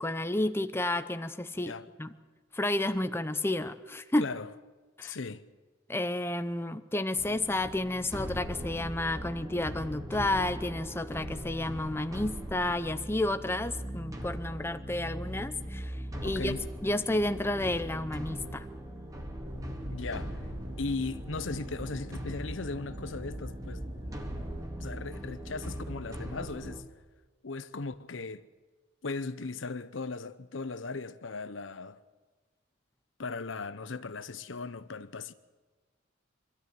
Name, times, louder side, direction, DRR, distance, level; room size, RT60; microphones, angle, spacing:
voice 1, 0.0-1.7 2.0-2.1 2.5-4.3 5.0-5.2 5.9-16.5 16.8-18.7, left 1 dB, 10° left, 0.7 m, -31 dB
voice 2, 4.2-4.5 5.0-5.4 16.2-16.6 19.9-20.4 20.8-24.2 24.8-26.8 27.4-28.4 29.0-32.0 33.2-35.3, left 3 dB, 85° left, 0.9 m, -37 dB
sound 1, 7.2-26.8, equal, 20° right, 2.3 m, -40 dB
sound 2, 19.4-24.7, equal, 40° right, 4.1 m, -42 dB
24.5 x 13.0 x 9.5 m
head